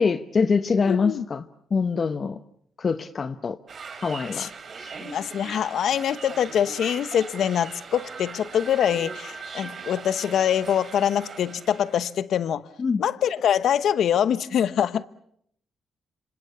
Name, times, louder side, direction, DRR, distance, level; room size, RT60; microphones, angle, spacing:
voice 1, 0.0-1.4 1.7-2.4 2.8-3.6 4.0-4.5 4.8-4.9 12.8-13.0, left 5 dB, 45° left, 1.0 m, -24 dB
voice 2, 0.9-1.2 4.4-4.5 5.0-12.6 13.0-15.1, left 9 dB, 75° left, 1.0 m, -24 dB
sound 1, 3.7-12.1, right 5 dB, 50° right, 3.7 m, -40 dB
27.5 x 26.5 x 7.0 m
cardioid pair, 80°, 0 cm